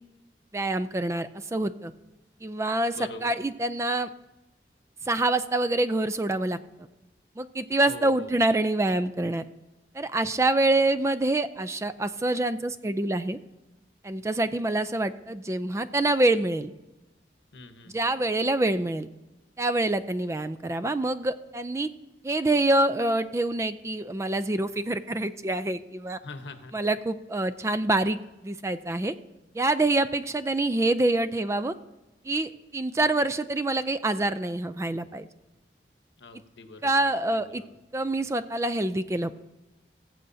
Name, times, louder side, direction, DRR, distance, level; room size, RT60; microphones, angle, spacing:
voice 1, 0.5-1.9 2.4-4.1 5.0-6.6 7.4-9.4 9.9-13.4 14.0-16.7 17.9-19.1 19.6-21.9 22.2-26.2 26.7-29.1 29.5-31.7 32.2-35.3 36.8-37.6 37.9-39.4, right 2 dB, 15° right, 12 dB, 0.3 m, -26 dB
voice 2, 3.0-3.3 7.9-8.3 17.5-18.0 26.2-26.7 36.2-37.8, left 2 dB, 85° left, 8 dB, 1.0 m, -44 dB
20.5 x 7.6 x 2.7 m, 1.0 s
head